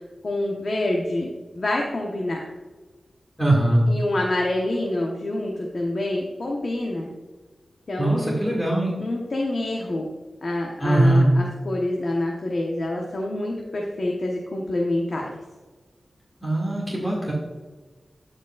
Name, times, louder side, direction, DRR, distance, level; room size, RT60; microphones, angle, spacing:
voice 1, 0.2-2.5 3.9-7.1 7.9-8.3 9.0-10.1 10.4-15.4, left 1 dB, 60° left, -1 dB, 1.1 m, -27 dB
voice 2, 3.4-3.9 8.0-8.9 10.8-11.3 16.4-17.3, right 1 dB, 10° left, -4 dB, 2.2 m, -21 dB
13.0 x 5.1 x 2.5 m, 1.3 s
cardioid pair, 50°, 0 cm